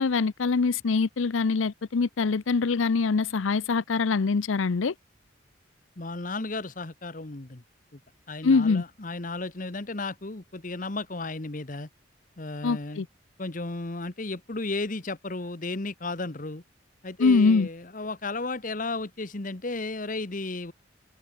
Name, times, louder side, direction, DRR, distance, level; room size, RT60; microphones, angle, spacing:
voice 1, 0.0-4.9 8.4-8.8 12.6-13.1 17.2-17.7, left 4 dB, 85° left, 0.6 m, -23 dB
voice 2, 6.0-7.6 7.9-8.0 8.3-11.9 12.4-13.0 13.4-16.6 17.0-20.7, left 3 dB, 40° left, 1.2 m, -34 dB
open air
head